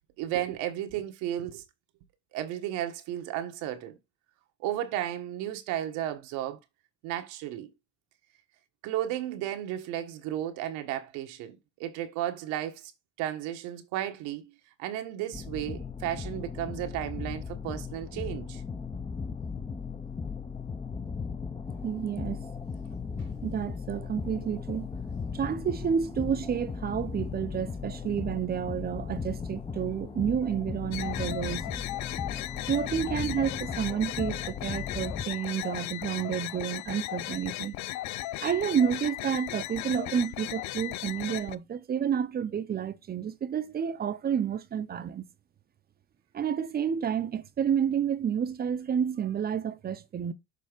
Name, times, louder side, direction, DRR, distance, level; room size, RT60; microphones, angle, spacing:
voice 1, 0.2-1.6 2.3-4.0 4.6-6.6 7.0-7.7 8.8-12.9 13.2-14.5 14.8-18.6, right 12 dB, 85° right, 1.3 m, -34 dB
sound 1, 15.3-35.2, left 5 dB, 15° left, 0.8 m, -37 dB
voice 2, 21.8-22.4 23.4-24.9 25.3-31.7 32.7-37.7 38.4-45.2 46.3-50.3, right 8 dB, 30° right, 0.8 m, -30 dB
sound 2, 30.9-41.6, left 16 dB, 75° left, 0.5 m, -36 dB
6.7 x 3.5 x 5.1 m
cardioid pair, 120°, 29 cm